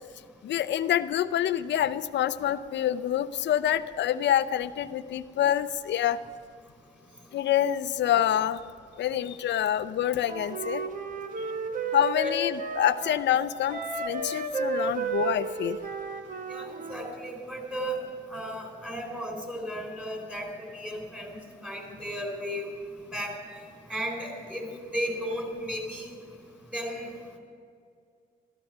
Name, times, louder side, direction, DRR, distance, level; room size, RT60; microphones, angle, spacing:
voice 1, 0.4-6.2 7.3-8.6 9.0-10.8 11.9-15.8, left 10 dB, 65° left, 13 dB, 0.6 m, -26 dB
Wind instrument woodwind instrument, 10.2-13.2 13.7-17.2, right 4 dB, 45° right, 1.2 m, -32 dB
voice 2, 16.5-18.0 18.3-22.7 23.1-23.3 23.9-26.1 26.7-27.1, equal, 5° right, 2 dB, 4.2 m, -35 dB
14.0 x 12.5 x 6.2 m, 2.3 s
cardioid pair, 90°, 20 cm